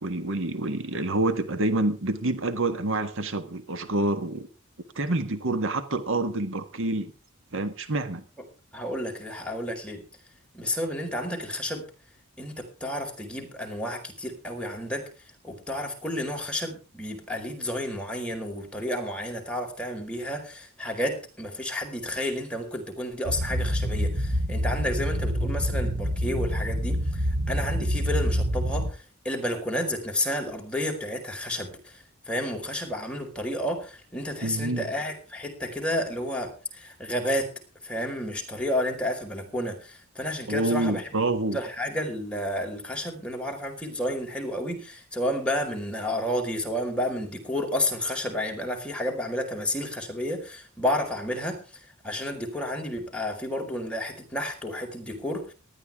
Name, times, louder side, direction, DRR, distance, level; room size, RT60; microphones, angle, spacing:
voice 1, 0.0-4.5 4.9-7.1 7.5-8.2 27.8-27.9 34.4-34.9 40.5-41.6, right 2 dB, 65° right, 10 dB, 1.5 m, -27 dB
voice 2, 8.7-10.0 10.5-11.8 12.4-15.1 15.4-27.0 27.5-28.9 29.2-31.7 32.3-36.5 36.8-37.5 37.8-39.7 40.1-41.0 41.5-51.6 52.0-55.4, left 1 dB, 5° left, 1 dB, 4.7 m, -31 dB
sound 1, 23.2-28.9, equal, 40° right, 1.2 m, -27 dB
19.0 x 13.5 x 3.6 m, 0.34 s
head